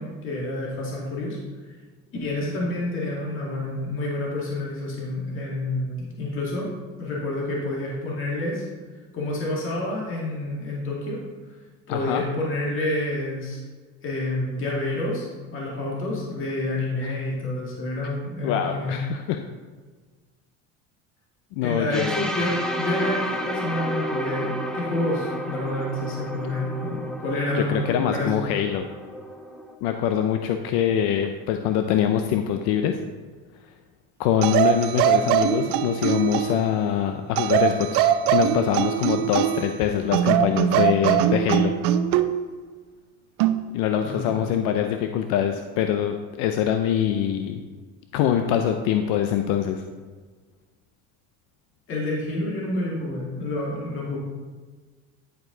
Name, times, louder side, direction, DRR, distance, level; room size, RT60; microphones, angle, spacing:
voice 1, 0.0-1.4 1.6-1.7 2.2-6.7 7.0-8.6 9.1-11.2 11.9-13.6 14.0-18.9 21.6-28.3 44.0-44.3 51.9-54.2, left 2 dB, 40° left, -4 dB, 2.0 m, -28 dB
voice 2, 11.9-12.2 18.4-19.4 21.6-22.3 27.5-28.8 29.8-33.0 34.2-38.0 38.3-41.7 43.7-47.6 48.1-49.8, left 9 dB, 80° left, 6 dB, 0.6 m, -24 dB
sound 1, 21.9-29.7, equal, ahead, 0.6 m, -31 dB
sound 2, 34.4-36.7 37.4-39.7 40.1-42.3 43.4-43.7, right 10 dB, 80° right, 0.6 m, -22 dB
10.5 x 4.7 x 3.9 m, 1.4 s
cardioid pair, 140°, 33 cm